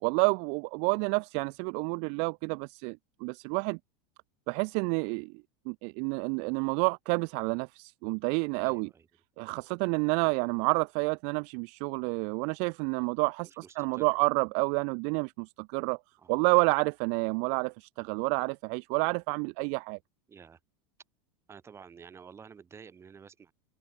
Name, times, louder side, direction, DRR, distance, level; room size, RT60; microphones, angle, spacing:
voice 1, 0.0-3.8 4.5-5.3 5.7-8.9 9.4-16.0 16.3-20.0, right 40 dB or more, 50° right, 0.5 m, -29 dB
voice 2, 8.6-9.1 13.4-14.2 16.2-16.5 20.3-20.6 21.5-23.5, right 6 dB, 20° right, 5.9 m, -51 dB
open air
supercardioid pair, 140°, 14 cm